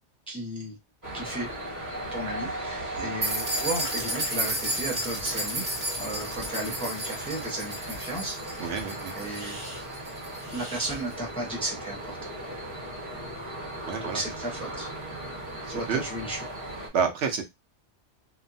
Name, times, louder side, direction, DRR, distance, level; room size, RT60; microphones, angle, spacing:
voice 1, 0.3-0.7 1.1-1.6 2.1-5.6 6.0-8.7 9.1-9.6 10.5-12.3 14.1-14.9 15.7-16.5, right 1 dB, 5° left, -2 dB, 0.7 m, -34 dB
sound 1, 1.0-16.9, right 1 dB, 20° right, 1.0 m, -37 dB
sound 2, 3.2-11.0, right 1 dB, 45° right, 1.1 m, -33 dB
voice 2, 8.6-9.1 13.8-14.2 15.6-16.0 16.9-17.4, right 6 dB, 70° right, 4 dB, 0.9 m, -29 dB
2.9 x 2.0 x 2.6 m, 0.21 s
omnidirectional pair, 1.2 m